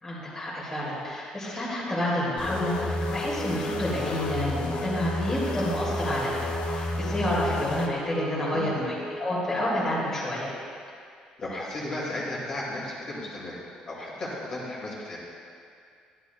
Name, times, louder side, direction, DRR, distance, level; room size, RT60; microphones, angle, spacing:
voice 1, 0.0-10.5, left 1 dB, 15° left, -7 dB, 2.0 m, -29 dB
sound 1, 2.4-7.9, left 2 dB, 55° left, 0.8 m, -32 dB
Wind instrument woodwind instrument, 2.4-9.2, right 1 dB, 75° right, 2.1 m, -37 dB
voice 2, 11.4-13.6 13.9-15.2, left 1 dB, 35° left, -6 dB, 2.1 m, -34 dB
12.5 x 11.0 x 2.3 m, 2.3 s
cardioid pair, 155°, 2 cm